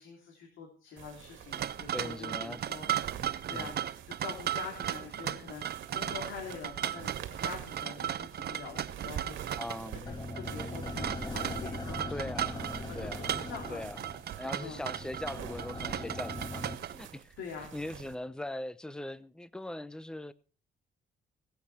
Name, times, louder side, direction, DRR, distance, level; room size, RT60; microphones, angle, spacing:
voice 1, 0.0-2.9 3.5-5.6 5.9-7.1 7.4-9.6 10.0-12.3 12.8-13.8 14.6-14.8 17.4-17.7, left 5 dB, 80° left, 3.5 m, -45 dB
sound 1, 1.0-18.2, right 10 dB, 80° right, 2.2 m, -48 dB
sound 2, 1.5-17.2, right 10 dB, 55° right, 0.8 m, -37 dB
voice 2, 1.9-2.6 3.5-3.8 9.6-10.1 12.1-13.4 13.7-14.0 14.3-16.6 16.9-17.3 17.7-20.3, left 1 dB, 5° left, 0.8 m, -40 dB
sound 3, 10.0-16.8, left 2 dB, 20° left, 1.9 m, -41 dB
21.0 x 8.3 x 4.4 m
cardioid pair, 90°, 20 cm